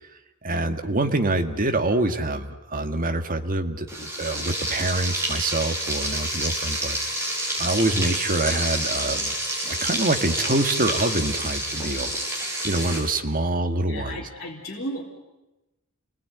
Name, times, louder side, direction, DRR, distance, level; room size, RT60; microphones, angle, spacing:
voice 1, 0.4-7.0 7.6-9.3 9.6-12.1 12.6-14.3, right 2 dB, 40° right, 6 dB, 2.0 m, -25 dB
Frying (food), 3.9-13.0, right 1 dB, 10° right, 8.0 m, -28 dB
voice 2, 13.7-15.0, equal, 50° left, -5 dB, 4.1 m, -34 dB
29.5 x 21.0 x 9.5 m, 1.0 s
head